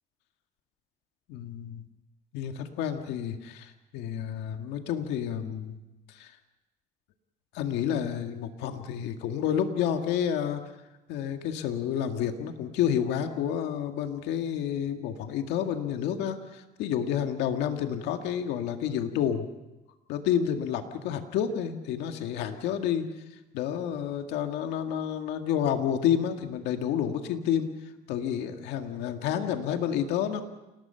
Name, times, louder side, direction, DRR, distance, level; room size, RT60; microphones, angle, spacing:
voice 1, 1.3-1.8 2.3-5.8 6.1-6.3 7.5-10.6 11.1-19.5 20.1-23.1 23.5-27.7 28.1-30.4, left 9 dB, 90° left, 5 dB, 2.0 m, -29 dB
29.0 x 19.0 x 5.7 m, 1.0 s
cardioid pair, 110°, 17 cm